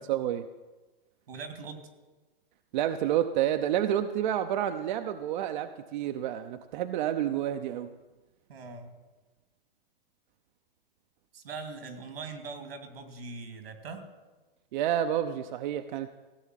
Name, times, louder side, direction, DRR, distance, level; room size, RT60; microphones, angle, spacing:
voice 1, 0.1-0.4 2.7-7.9 14.7-16.2, right 11 dB, 50° right, 8 dB, 0.7 m, -29 dB
voice 2, 1.3-1.9 8.5-8.9 11.3-14.0, right 4 dB, 85° right, 6 dB, 2.7 m, -41 dB
16.0 x 7.2 x 9.2 m, 1.2 s
hypercardioid pair, 140°, 30 cm